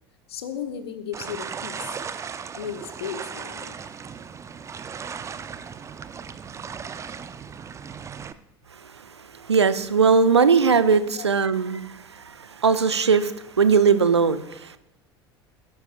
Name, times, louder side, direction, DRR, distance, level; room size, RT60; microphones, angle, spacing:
voice 1, 0.3-1.9 2.6-3.8 10.8-11.3, left 8 dB, 65° left, 9 dB, 1.1 m, -35 dB
sound 1, 1.1-8.3, right 6 dB, 20° right, 0.5 m, -37 dB
voice 2, 9.3-14.8, right 5 dB, 80° right, 13 dB, 0.6 m, -20 dB
17.0 x 9.7 x 2.5 m, 0.84 s
figure-of-eight pair, 70°, 14 cm